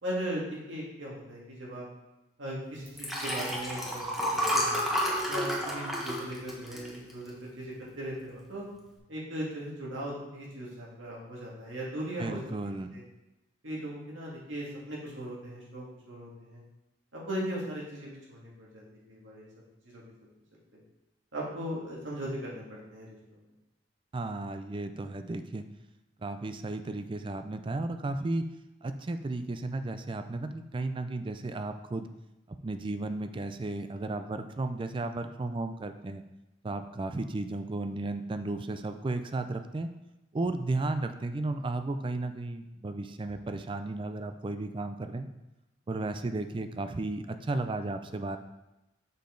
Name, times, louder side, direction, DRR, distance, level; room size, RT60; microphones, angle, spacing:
voice 1, 0.0-1.9 2.4-4.1 4.3-4.8 5.3-8.7 9.1-13.0 13.6-16.6 17.1-18.8 19.1-19.5 19.8-20.3 21.3-23.2, equal, 85° right, -4 dB, 2.1 m, -38 dB
Liquid, 2.9-7.5 8.0-8.3 8.5-8.6, equal, ahead, 1.1 m, -30 dB
voice 2, 12.2-12.9 24.1-25.6 26.2-28.5 28.8-32.1 32.5-36.2 36.6-39.9 40.3-45.3 45.9-48.4, right 2 dB, 25° right, 9 dB, 0.4 m, -34 dB
6.7 x 5.2 x 3.8 m, 0.97 s
head